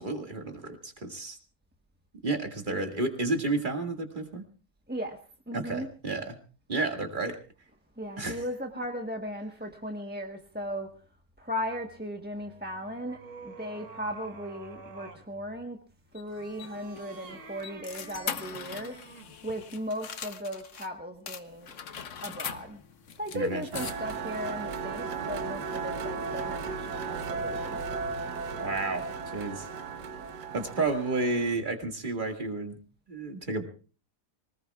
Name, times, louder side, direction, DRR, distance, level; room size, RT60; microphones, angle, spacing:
voice 1, 0.0-1.4 2.2-4.4 5.5-6.4 6.7-7.4 8.2-8.4 23.3-23.6 28.6-29.1 29.3-29.7 30.5-32.8 33.1-33.6, right 3 dB, 30° right, 4 dB, 2.2 m, -31 dB
voice 2, 4.9-5.2 5.5-5.9 8.0-11.0 11.4-15.8 16.1-19.0 19.4-21.7 22.2-22.8 23.2-28.1, equal, 5° right, 3 dB, 1.0 m, -37 dB
sound 1, 12.3-15.3 16.2-19.4, right 3 dB, 50° right, 1.8 m, -48 dB
sound 2, 16.1-20.9 21.3-24.3, left 7 dB, 55° left, 1.2 m, -41 dB
sound 3, 23.7-31.6, right 4 dB, 80° right, 1.7 m, -35 dB
25.0 x 19.5 x 2.4 m, 0.36 s
omnidirectional pair, 1.8 m